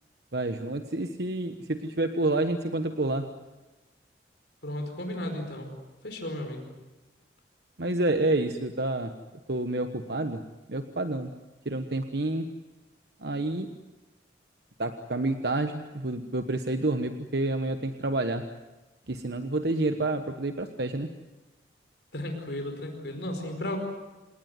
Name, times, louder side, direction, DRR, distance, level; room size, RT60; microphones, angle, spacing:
voice 1, 0.3-3.3 7.8-9.1 9.5-10.4 10.7-11.3 11.6-12.5 13.2-13.7 14.8-18.4 19.1-21.1, right 2 dB, 60° right, 8 dB, 1.2 m, -29 dB
voice 2, 4.6-5.7 6.0-6.7 22.1-23.8, left 1 dB, 60° left, 4 dB, 5.0 m, -34 dB
28.0 x 19.0 x 9.4 m, 1.1 s
head